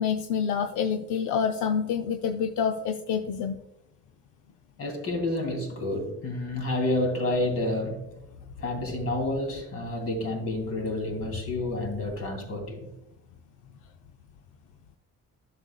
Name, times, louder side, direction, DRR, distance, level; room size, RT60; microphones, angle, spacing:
voice 1, 0.0-3.6 8.9-9.0, left 7 dB, 85° left, 5 dB, 0.6 m, -27 dB
voice 2, 4.8-8.0 8.6-12.9, left 1 dB, 50° left, 2 dB, 2.8 m, -29 dB
11.0 x 6.6 x 2.2 m, 0.92 s
cardioid pair, 90°, 30 cm